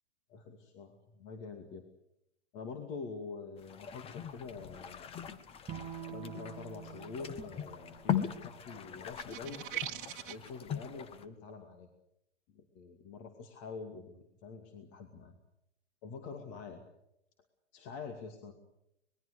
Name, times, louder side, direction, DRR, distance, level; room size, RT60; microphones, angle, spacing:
voice 1, 0.3-1.8 2.5-5.2 6.1-9.6 10.1-11.9 12.5-15.4 16.0-16.8 17.7-18.5, left 4 dB, 35° left, 5 dB, 2.5 m, -46 dB
sound 1, 3.6-11.3, left 9 dB, 15° left, 1.1 m, -40 dB
Bowed string instrument, 5.7-9.0, right 8 dB, 15° right, 1.8 m, -47 dB
sound 2, 9.1-10.5, right 14 dB, 45° right, 1.2 m, -40 dB
26.0 x 21.0 x 6.8 m, 0.82 s
figure-of-eight pair, 115°, 35 cm